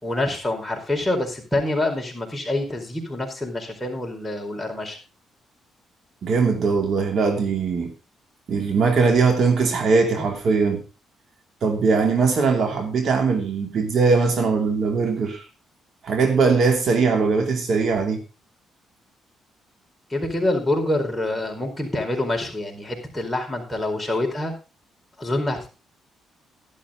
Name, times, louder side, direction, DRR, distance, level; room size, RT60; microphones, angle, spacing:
voice 1, 0.0-5.0 20.1-24.5 25.2-25.7, left 1 dB, 10° left, 4.6 m, -26 dB
voice 2, 6.2-7.9 8.5-10.8 11.6-15.4 16.0-18.2, right 4 dB, 60° right, 2.7 m, -20 dB
12.5 x 11.5 x 3.8 m
cardioid pair, 90°, 0 cm